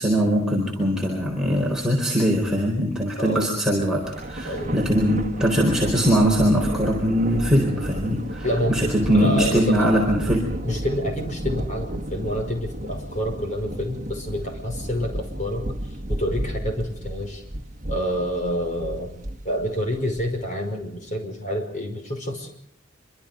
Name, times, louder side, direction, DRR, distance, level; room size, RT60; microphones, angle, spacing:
voice 1, 0.0-10.5, equal, 5° right, -4 dB, 4.4 m, -21 dB
voice 2, 3.2-3.5 4.4-4.7 8.4-9.9 10.6-15.7 16.1-17.4 17.9-19.1 19.4-22.5, equal, 40° left, 4 dB, 5.3 m, -28 dB
Thunder, 4.0-20.6, right 1 dB, 40° right, 1.7 m, -33 dB
26.5 x 25.0 x 5.2 m, 0.65 s
head